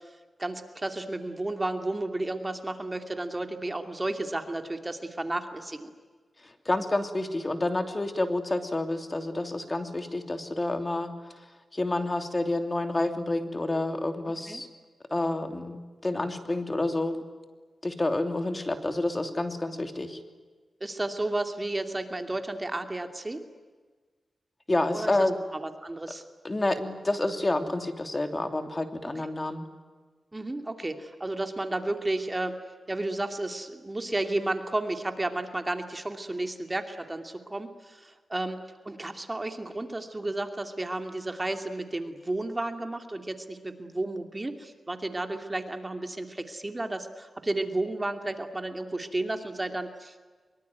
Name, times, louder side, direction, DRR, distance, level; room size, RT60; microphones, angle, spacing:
voice 1, 0.4-5.9 14.5-14.6 20.8-23.4 24.9-26.2 30.3-32.5 32.9-38.6 38.8-50.2, right 2 dB, 25° right, 6 dB, 2.6 m, -32 dB
voice 2, 6.4-11.1 11.7-14.7 15.1-17.2 17.8-20.2 24.7-25.4 26.4-29.7, left 2 dB, 25° left, 7 dB, 3.0 m, -29 dB
24.5 x 23.5 x 9.4 m, 1.4 s
cardioid pair, 70°, 0 cm